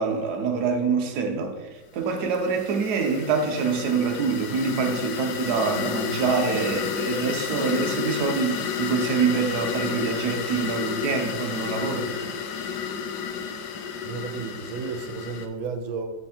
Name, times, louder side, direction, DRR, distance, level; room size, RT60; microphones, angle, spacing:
voice 1, 0.0-1.6 1.9-12.1, right 5 dB, 60° right, 1.3 m, -25 dB
sound 1, 2.1-15.5, left 7 dB, 70° left, 1.1 m, -31 dB
voice 2, 14.0-16.1, right 5 dB, 90° right, 1.6 m, -32 dB
6.0 x 4.5 x 4.2 m
omnidirectional pair, 2.1 m